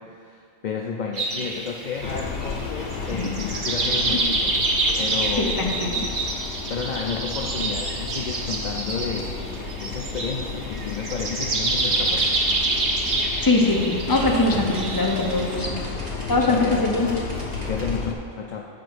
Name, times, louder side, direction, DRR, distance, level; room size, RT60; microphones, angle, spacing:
voice 1, 0.2-4.5 5.0-5.6 6.7-9.3 9.8-12.3 16.5-16.8 17.6-18.7, left 6 dB, 55° left, 1 dB, 0.6 m, -31 dB
sound 1, 1.1-15.6, right 2 dB, 80° right, 1.4 m, -27 dB
sound 2, 2.0-18.1, left 4 dB, 90° left, 1.0 m, -33 dB
voice 2, 4.0-4.3 5.4-6.1 13.4-15.7 16.3-17.1, left 2 dB, 20° left, -1 dB, 0.8 m, -22 dB
sound 3, 12.2-17.9, right 2 dB, 40° right, 1.4 m, -38 dB
7.5 x 4.8 x 6.2 m, 2.3 s
omnidirectional pair, 1.1 m